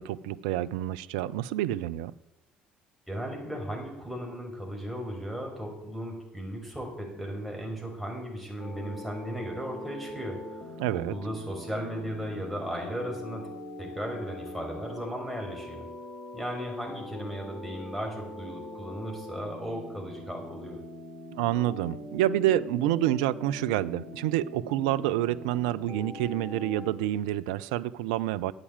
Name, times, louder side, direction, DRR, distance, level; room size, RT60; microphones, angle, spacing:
voice 1, 0.0-2.1 10.8-11.1 21.3-28.5, right 13 dB, 65° right, 0.5 m, -28 dB
voice 2, 3.1-13.5 13.8-15.9 16.3-20.8, equal, ahead, 5.7 m, -36 dB
sound 1, 8.6-26.9, left 1 dB, 30° left, 2.2 m, -43 dB
11.5 x 8.4 x 8.9 m
figure-of-eight pair, 55°, 4 cm